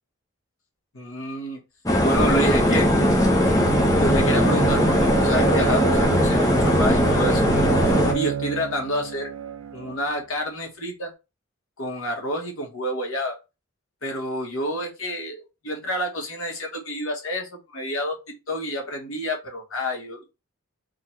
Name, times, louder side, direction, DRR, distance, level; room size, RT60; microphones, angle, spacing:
voice 1, 0.9-1.6 2.0-2.9 4.0-7.4 8.1-9.3 9.7-11.1 11.8-13.4 14.0-20.3, equal, 75° left, 1 dB, 1.3 m, -29 dB
sound 1, 1.8-8.1, equal, 15° left, 0.7 m, -19 dB
Bowed string instrument, 2.2-10.0, right 8 dB, 75° right, 0.4 m, -29 dB
3.7 x 2.5 x 4.3 m, 0.27 s
head